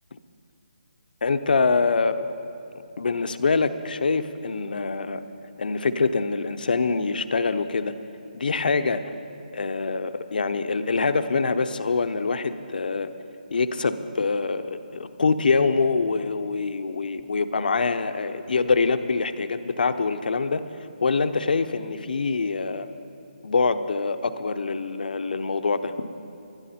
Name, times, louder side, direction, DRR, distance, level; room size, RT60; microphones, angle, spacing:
voice 1, 1.2-2.2 3.0-5.2 5.6-7.9 8.3-9.0 9.5-13.1 13.5-20.6 21.0-22.9 23.4-26.1, left 4 dB, 70° left, 10 dB, 0.8 m, -24 dB
20.0 x 12.0 x 4.3 m, 2.6 s
figure-of-eight pair, 155°, 5 cm